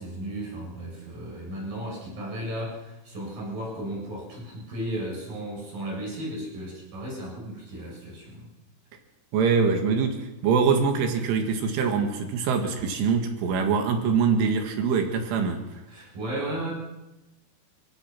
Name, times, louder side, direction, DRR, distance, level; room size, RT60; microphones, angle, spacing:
voice 1, 0.0-8.5 15.9-16.7, right 1 dB, 45° right, -3 dB, 8.9 m, -35 dB
voice 2, 9.3-15.7, right 5 dB, 80° right, 4 dB, 4.6 m, -24 dB
27.5 x 17.5 x 6.1 m, 0.98 s
omnidirectional pair, 5.5 m